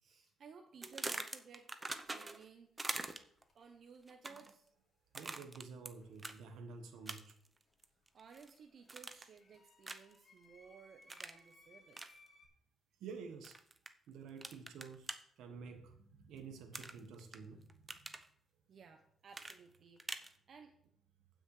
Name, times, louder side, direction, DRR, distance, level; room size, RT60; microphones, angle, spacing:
voice 1, 0.0-1.7 2.0-3.1 3.5-4.7 8.1-12.1 18.7-20.7, right 6 dB, 55° right, 0.9 m, -58 dB
sound 1, 0.8-2.5 2.8-3.4 4.1-4.5 5.1-5.9 6.2-6.4 7.1-7.5 7.8-8.5 8.9-9.4 9.8-10.2 11.1-11.4 11.9-12.1 13.4-13.9 14.4-15.2 16.7-17.4 17.7-18.3 19.3-20.3, right 2 dB, 20° right, 0.8 m, -44 dB
sound 2, 1.9-2.1 3.3-3.9 6.0-7.0 7.2-12.5, left 2 dB, 40° left, 3.0 m, -66 dB
voice 2, 5.1-7.4 13.0-13.6 14.1-18.1, right 5 dB, 85° right, 1.3 m, -51 dB
16.0 x 6.3 x 3.3 m
cardioid pair, 90°, 0 cm